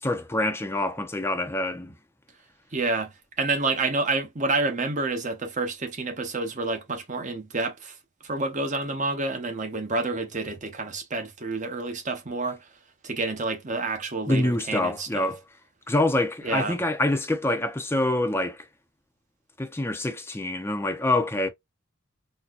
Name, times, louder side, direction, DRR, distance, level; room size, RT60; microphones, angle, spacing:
voice 1, 0.0-2.0 14.3-15.4 15.9-18.7 19.6-21.5, left 1 dB, 10° left, 0.6 m, -26 dB
voice 2, 2.7-8.0 8.2-12.7 13.0-15.3 16.4-16.8, right 3 dB, 35° right, 0.9 m, -29 dB
4.2 x 2.3 x 2.4 m
head